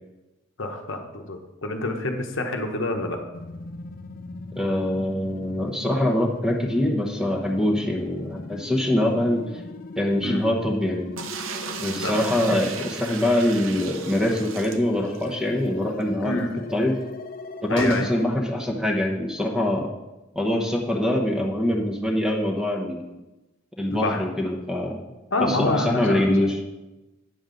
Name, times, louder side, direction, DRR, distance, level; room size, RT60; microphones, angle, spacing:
voice 1, 0.6-3.2 7.9-8.0 10.2-10.4 12.0-12.2 16.2-16.5 17.7-18.1 23.9-24.3 25.3-26.5, left 2 dB, 70° left, 3 dB, 1.0 m, -27 dB
sound 1, 3.3-18.2, left 2 dB, 45° left, 0.5 m, -39 dB
voice 2, 4.6-9.4 10.0-11.1 11.8-16.4 16.7-16.9 17.6-19.9 20.3-23.2 23.8-25.0 25.4-26.6, left 1 dB, 5° right, 1 dB, 1.0 m, -24 dB
sound 2, 11.2-15.4 15.7-15.8 16.0-16.1 17.8-18.1, right 5 dB, 85° right, 0.7 m, -35 dB
8.9 x 7.0 x 3.9 m, 1.1 s
head